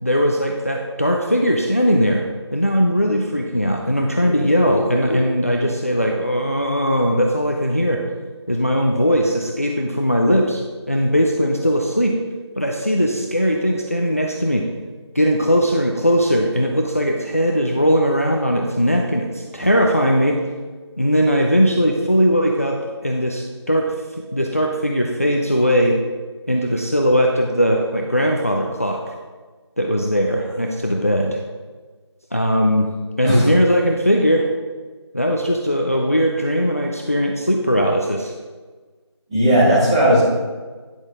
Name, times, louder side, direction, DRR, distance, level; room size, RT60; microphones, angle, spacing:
voice 1, 0.0-2.2 2.5-8.0 8.5-12.1 12.6-14.6 15.1-20.4 21.0-23.9 24.3-26.0 26.5-29.1 29.8-31.4 32.3-32.9 33.2-34.5 35.1-38.3, equal, 30° left, 1 dB, 0.5 m, -19 dB
voice 2, 39.3-40.3, equal, 15° right, -10 dB, 1.7 m, -16 dB
9.9 x 6.3 x 3.6 m, 1.4 s
figure-of-eight pair, 175°, 15 cm